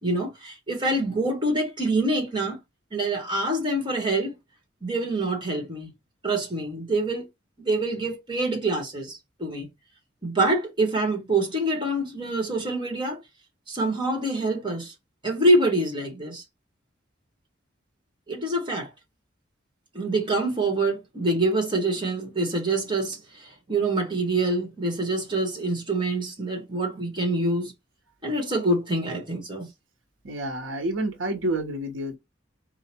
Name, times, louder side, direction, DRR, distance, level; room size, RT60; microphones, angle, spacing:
voice 1, 0.0-2.6 2.9-4.3 4.8-5.9 6.2-7.3 7.6-9.7 10.2-13.2 13.7-14.9 15.2-16.4 18.3-18.9 19.9-27.7 28.2-29.7, right 2 dB, 25° right, 1.4 m, -26 dB
voice 2, 30.2-32.2, right 1 dB, 85° right, 1.1 m, -29 dB
3.8 x 2.4 x 4.4 m
head